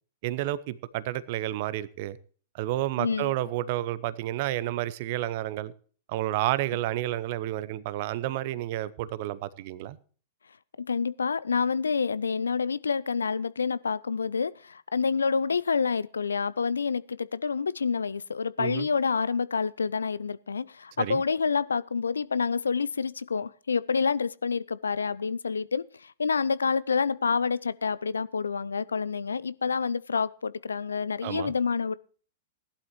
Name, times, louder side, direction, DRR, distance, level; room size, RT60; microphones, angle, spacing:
voice 1, 0.2-2.2 2.5-5.7 6.1-10.0 18.6-18.9 21.0-21.2 31.2-31.5, right 14 dB, 45° right, 0.7 m, -30 dB
voice 2, 3.0-3.3 10.8-31.9, left 5 dB, 70° left, 0.5 m, -28 dB
17.5 x 11.5 x 3.0 m
figure-of-eight pair, 100°, 0 cm